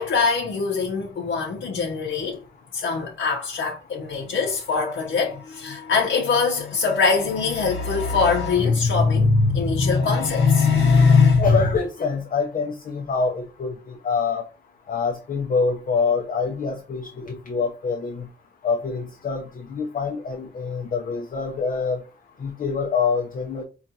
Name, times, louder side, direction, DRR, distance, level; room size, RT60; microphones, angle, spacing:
voice 1, 0.0-2.4 2.7-11.6, left 4 dB, 80° left, 0.7 m, -21 dB
voice 2, 11.4-14.4 14.9-18.3 18.6-19.4 19.7-22.0 22.4-23.6, left 5 dB, 45° left, 0.5 m, -25 dB
4.7 x 2.4 x 2.7 m
wide cardioid pair, 180°, 20 cm